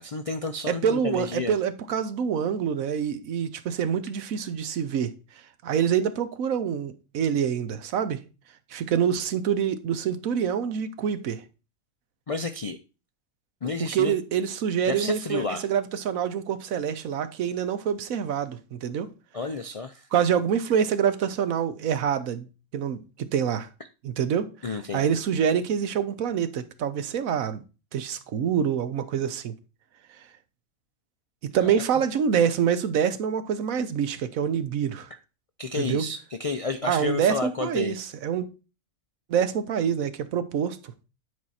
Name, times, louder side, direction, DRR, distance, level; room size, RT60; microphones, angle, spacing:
voice 1, 0.0-1.6 12.3-12.8 13.6-14.1 14.9-15.7 19.3-20.1 24.6-25.2 31.6-31.8 35.6-38.0, left 3 dB, 65° left, 0.3 m, -31 dB
voice 2, 0.7-5.1 5.6-8.2 8.7-11.4 13.9-19.1 20.1-22.5 22.7-23.7 24.0-24.5 24.9-27.6 27.9-29.5 31.5-35.1 35.7-36.0 36.9-38.5 39.3-40.8, right 8 dB, 75° right, 1.2 m, -26 dB
9.5 x 4.6 x 4.2 m
omnidirectional pair, 1.4 m